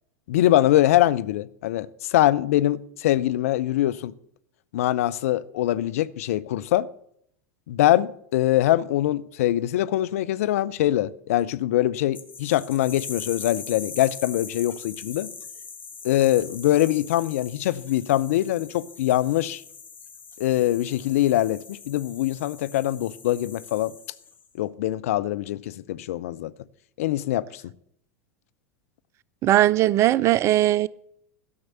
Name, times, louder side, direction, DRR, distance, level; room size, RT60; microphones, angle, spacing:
voice 1, 0.3-4.1 4.7-6.9 7.7-15.3 16.0-19.6 20.4-23.9 24.6-26.5 27.0-27.6, left 14 dB, 60° left, 0.5 m, -23 dB
sound 1, 12.1-24.5, left 6 dB, 20° left, 1.4 m, -42 dB
voice 2, 29.4-30.9, right 14 dB, 30° right, 0.4 m, -19 dB
12.5 x 6.5 x 7.2 m
figure-of-eight pair, 85°, 9 cm